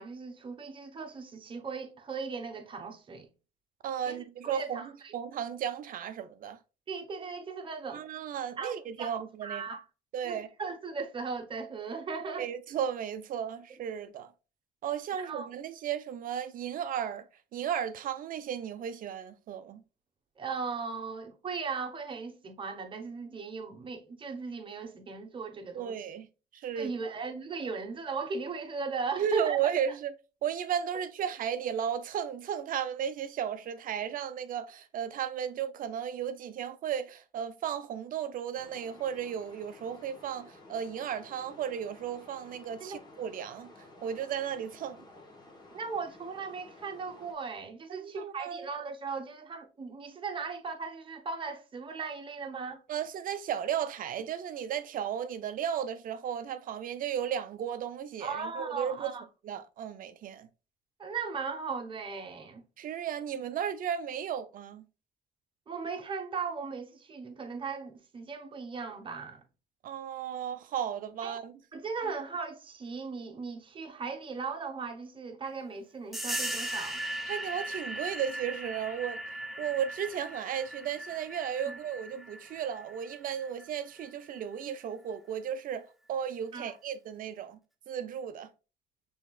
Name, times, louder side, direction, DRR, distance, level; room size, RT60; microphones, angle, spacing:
voice 1, 0.0-3.3 4.1-5.1 6.9-8.0 8.6-9.8 10.2-12.5 15.1-15.5 20.4-26.0 26.7-29.7 42.8-43.0 45.7-52.8 58.2-59.2 61.0-62.6 65.7-69.4 71.2-71.4 71.7-77.0 81.7-81.8 86.5-86.7, right 5 dB, 30° right, 1.0 m, -38 dB
voice 2, 3.8-4.8 5.1-6.6 7.9-9.6 10.1-10.5 12.4-14.3 14.8-17.2 17.5-19.8 25.7-26.3 26.5-27.1 29.2-30.1 30.4-43.7 44.0-45.0 47.9-48.7 52.9-59.1 59.4-60.5 62.8-64.8 69.8-71.5 77.3-79.2 79.6-87.6 87.9-88.5, right 8 dB, 55° right, 0.5 m, -34 dB
sound 1, 38.5-47.3, left 2 dB, 25° left, 1.2 m, -54 dB
sound 2, 76.1-84.4, right 1 dB, ahead, 0.8 m, -39 dB
5.7 x 3.5 x 2.3 m
cardioid pair, 110°, 17 cm